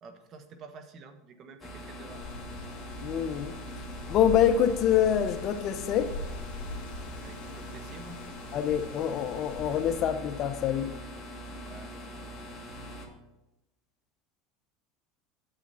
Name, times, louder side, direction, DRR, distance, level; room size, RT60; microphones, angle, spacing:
voice 1, 0.0-2.3 7.2-8.2 11.6-12.0, right 4 dB, 40° right, 8 dB, 1.3 m, -49 dB
sound 1, 1.6-13.1, equal, 15° left, 2.2 m, -42 dB
Wind, 2.1-10.0, left 3 dB, 70° left, 2.0 m, -42 dB
voice 2, 3.0-3.5 4.1-6.1 8.5-10.9, left 9 dB, 45° left, 10 dB, 0.8 m, -26 dB
8.9 x 8.2 x 4.2 m, 0.96 s
supercardioid pair, 120°, 0 cm